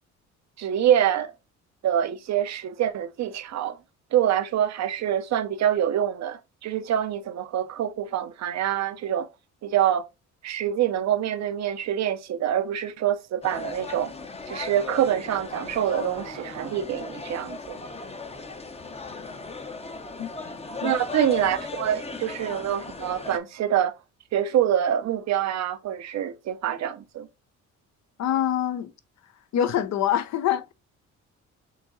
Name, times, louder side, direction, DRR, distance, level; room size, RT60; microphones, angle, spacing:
voice 1, 0.6-1.3 1.8-3.8 4.1-9.3 9.6-10.0 10.4-14.1 14.5-17.8 20.8-23.9 24.3-27.3, right 10 dB, 60° right, 0.6 m, -25 dB
sound 1, 13.4-23.4, left 3 dB, 20° left, 0.7 m, -37 dB
voice 2, 28.2-28.9 29.5-30.7, left 10 dB, 65° left, 0.6 m, -25 dB
6.6 x 2.8 x 2.6 m
cardioid pair, 90°, 30 cm